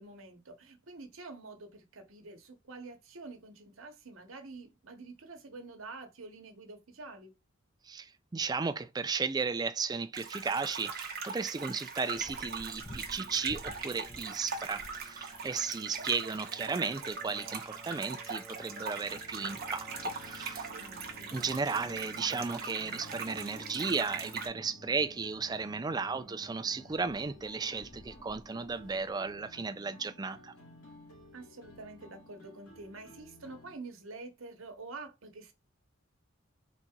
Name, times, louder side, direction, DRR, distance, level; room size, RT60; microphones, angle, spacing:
voice 1, 0.0-7.3 20.6-21.4 26.1-26.4 31.3-35.5, right 3 dB, 70° right, 1.0 m, -47 dB
voice 2, 7.8-20.7 21.3-30.5, right 4 dB, 20° right, 0.3 m, -35 dB
sound 1, 10.1-24.5, right 5 dB, 45° right, 0.9 m, -41 dB
sound 2, 12.1-29.1, left 1 dB, 20° left, 0.6 m, -53 dB
sound 3, 19.0-33.8, left 1 dB, 90° left, 1.9 m, -55 dB
4.0 x 2.4 x 4.5 m
head